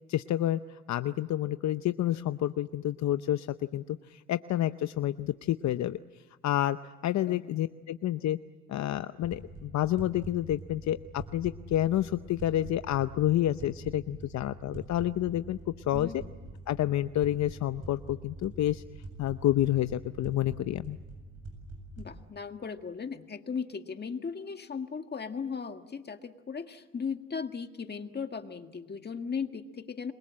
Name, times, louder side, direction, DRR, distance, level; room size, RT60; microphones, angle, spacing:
voice 1, 0.1-6.0 6.4-8.4 8.7-15.6 15.9-16.2 16.7-18.8 19.2-21.0, left 13 dB, 65° left, 11 dB, 0.7 m, -29 dB
sound 1, 9.2-22.2, right 2 dB, 55° right, 7.8 m, -45 dB
voice 2, 15.9-16.3 22.0-30.1, left 6 dB, 35° left, 7 dB, 1.8 m, -37 dB
28.0 x 22.5 x 7.6 m, 1.4 s
cardioid pair, 90°, 30 cm